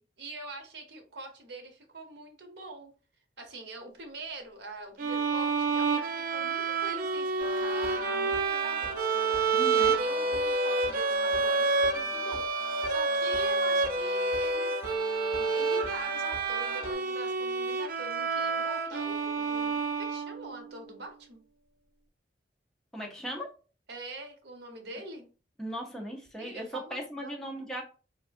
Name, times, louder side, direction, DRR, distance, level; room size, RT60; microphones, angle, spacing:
voice 1, 0.0-2.9 3.4-14.7 15.3-21.4 23.9-25.3 26.4-27.4, right 2 dB, 75° right, 0.8 m, -44 dB
sound 1, 5.0-20.6, right 4 dB, 50° right, 0.3 m, -29 dB
sound 2, 7.4-16.9, left 2 dB, 40° left, 1.0 m, -40 dB
voice 2, 9.5-10.0 22.9-23.5 25.6-27.8, equal, 5° left, 0.6 m, -38 dB
3.4 x 2.3 x 2.5 m
head